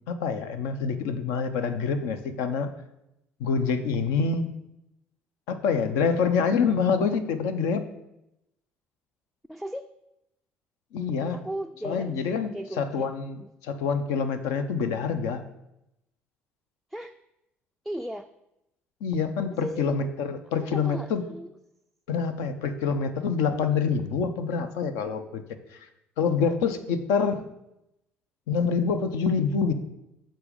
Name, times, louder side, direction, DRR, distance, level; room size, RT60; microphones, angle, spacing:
voice 1, 0.1-2.7 3.4-4.5 5.5-7.9 10.9-11.4 11.8-12.5 12.8-15.4 19.0-21.2 22.1-25.4 25.7-25.8 26.2-27.4 28.5-29.7, left 5 dB, 70° left, 9 dB, 0.6 m, -26 dB
voice 2, 9.5-9.9 11.3-13.1 13.4-13.5 16.9-17.2 17.8-18.3 19.5-19.9 20.7-21.5, right 1 dB, ahead, 10 dB, 0.3 m, -36 dB
6.8 x 3.8 x 5.1 m, 0.87 s
figure-of-eight pair, 50°, 6 cm